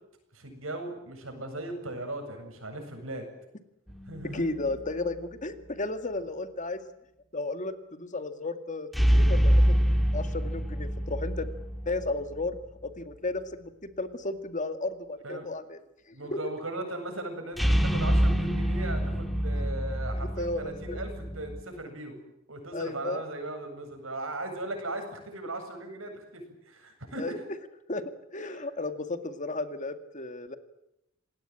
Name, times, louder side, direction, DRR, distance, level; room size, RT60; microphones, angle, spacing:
voice 1, 0.3-3.3 4.1-4.5 15.2-15.5 16.1-22.2 22.5-27.5 28.4-28.7, right 2 dB, 80° right, 5 dB, 7.8 m, -38 dB
sound 1, 3.9-4.8 8.9-12.6 17.6-21.6, equal, ahead, 2.5 m, -26 dB
voice 2, 4.3-6.9 7.3-9.8 10.1-11.5 11.9-12.6 12.8-15.8 16.1-16.2 20.2-21.0 22.7-23.2 27.2-27.4 27.9-28.0 28.3-30.6, left 2 dB, 40° left, 9 dB, 2.1 m, -34 dB
28.0 x 20.0 x 8.9 m, 0.84 s
head